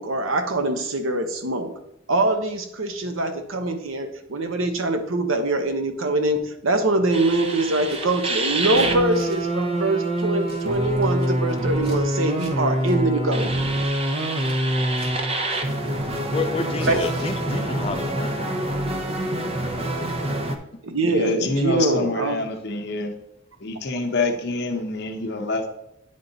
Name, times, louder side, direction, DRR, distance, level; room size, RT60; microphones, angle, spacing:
voice 1, 0.0-1.7 2.1-13.5 16.8-17.0 20.8-22.4, right 2 dB, 85° right, 0.9 m, -23 dB
sound 1, 7.1-20.6, right 1 dB, 30° right, 0.6 m, -25 dB
Scissors, 7.7-8.0 8.3-12.0 12.3-12.5 12.8-13.0 13.3-15.2 15.5-16.4 16.7-17.8, right 1 dB, 50° right, 1.6 m, -44 dB
voice 2, 16.3-18.4 19.7-19.8, left 3 dB, 30° left, 0.4 m, -29 dB
voice 3, 21.0-23.1 23.6-25.7, left 3 dB, 55° left, 0.8 m, -26 dB
9.3 x 3.7 x 3.9 m
head